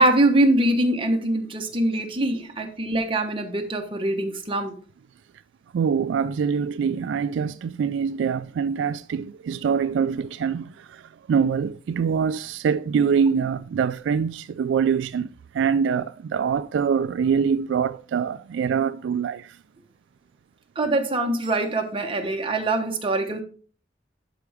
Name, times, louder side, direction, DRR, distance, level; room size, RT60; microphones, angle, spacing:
voice 1, 0.0-4.7 20.8-23.4, right 1 dB, 30° right, 1.2 m, -23 dB
voice 2, 5.7-11.0 11.3-15.3 15.5-19.5, right 6 dB, 75° right, 0.3 m, -24 dB
11.5 x 4.8 x 3.4 m
head